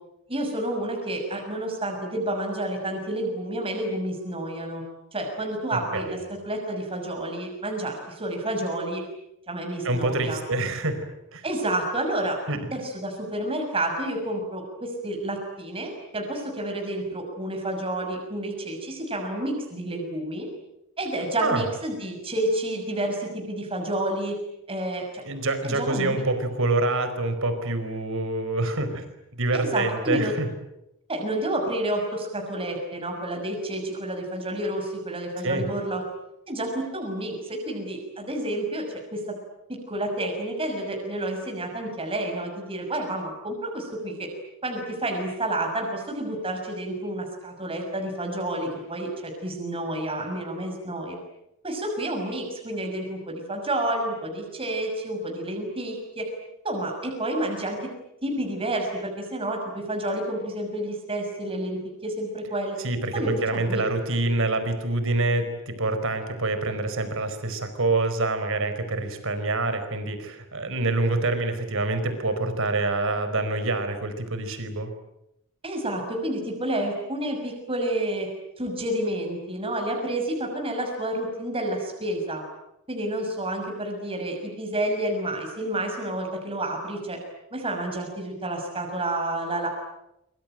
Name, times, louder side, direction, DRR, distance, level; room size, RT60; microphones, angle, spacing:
voice 1, 0.3-4.9 5.1-6.2 6.4-9.0 9.5-10.4 11.4-12.4 12.7-20.5 21.0-24.4 24.7-25.2 25.6-26.2 29.5-30.3 31.1-36.0 36.5-39.2 39.7-44.3 44.6-51.2 51.6-56.3 56.6-57.9 58.2-62.8 63.1-63.8 75.6-78.3 78.6-82.4 82.9-87.2 87.5-89.7, right 1 dB, 25° right, 2 dB, 6.2 m, -29 dB
voice 2, 5.7-6.2 9.8-11.4 12.5-12.7 21.4-21.7 25.2-29.0 29.3-30.5 35.4-35.6 62.8-74.9, right 2 dB, 60° right, 10 dB, 4.8 m, -26 dB
25.5 x 25.0 x 9.1 m, 0.85 s
head